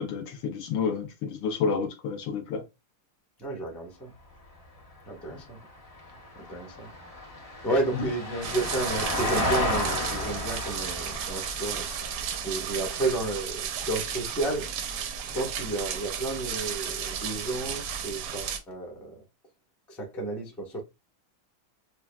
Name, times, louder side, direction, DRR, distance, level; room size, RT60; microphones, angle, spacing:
voice 1, 0.0-2.6 7.9-8.0, left 5 dB, 70° left, 1.3 m, -30 dB
voice 2, 3.4-4.1 5.1-5.6 6.3-6.9 7.6-14.7 15.2-19.2 19.9-20.8, right 2 dB, ahead, 0.5 m, -32 dB
Vehicle, 4.1-14.5 16.8-16.9, left 1 dB, 50° left, 0.4 m, -34 dB
sound 1, 8.4-18.6, right 8 dB, 90° right, 1.6 m, -34 dB
5.8 x 2.3 x 2.2 m
omnidirectional pair, 2.3 m